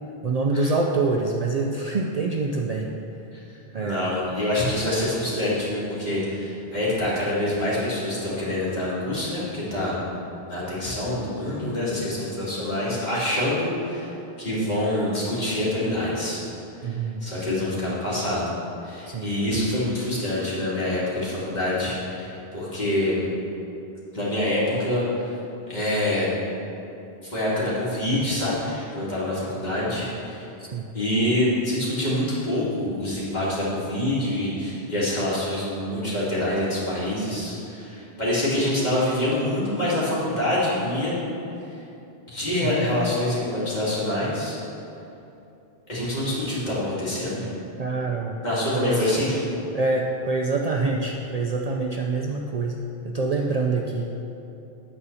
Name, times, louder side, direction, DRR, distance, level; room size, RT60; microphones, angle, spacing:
voice 1, 0.2-2.9 3.7-4.1 16.8-17.2 19.1-19.3 30.6-30.9 42.6-42.9 47.8-49.1 49.7-52.8 53.0-54.1, right 3 dB, 50° right, 0 dB, 0.5 m, -26 dB
voice 2, 3.8-10.0 10.5-16.4 16.7-18.5 18.8-23.3 24.1-25.4 25.7-26.3 27.2-30.5 30.9-41.2 42.3-44.6 45.9-47.5 48.4-49.4, left 1 dB, 45° left, -8 dB, 2.5 m, -26 dB
9.8 x 4.2 x 7.0 m, 2.8 s
omnidirectional pair, 1.0 m